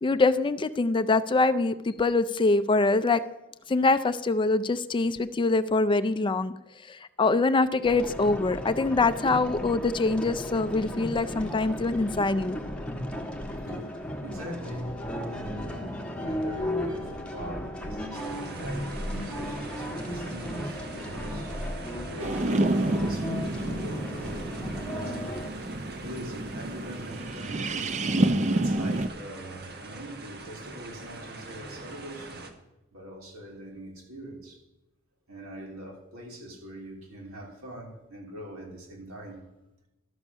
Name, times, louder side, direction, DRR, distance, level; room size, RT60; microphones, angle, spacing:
voice 1, 0.0-3.2 3.7-6.5 6.9-12.6, left 3 dB, 25° left, 0.4 m, -24 dB
sound 1, 7.8-25.5, equal, 5° left, 1.3 m, -35 dB
voice 2, 13.4-25.4 26.0-28.0 28.5-32.4 32.9-34.6 35.3-39.5, equal, 90° right, 3.2 m, -43 dB
sound 2, 18.1-32.5, right 2 dB, 50° right, 1.3 m, -42 dB
sound 3, 22.2-29.1, right 2 dB, 35° right, 0.5 m, -29 dB
12.5 x 7.0 x 6.2 m
head